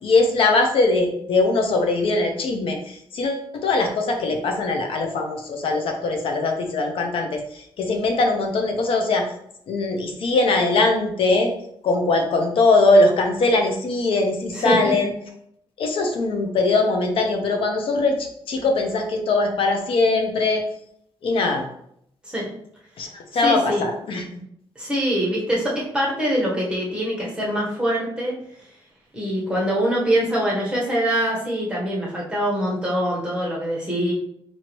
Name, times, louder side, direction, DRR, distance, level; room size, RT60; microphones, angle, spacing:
voice 1, 0.0-9.2 9.7-11.5 11.8-15.1 15.8-20.6 21.2-21.6 23.0-24.4, left 3 dB, 75° left, 3 dB, 0.7 m, -21 dB
voice 2, 14.5-14.9 22.2-22.5 23.4-23.8 24.8-28.3 29.1-34.1, equal, 10° right, -5 dB, 1.2 m, -23 dB
4.5 x 2.8 x 3.0 m, 0.72 s
wide cardioid pair, 150°, 9 cm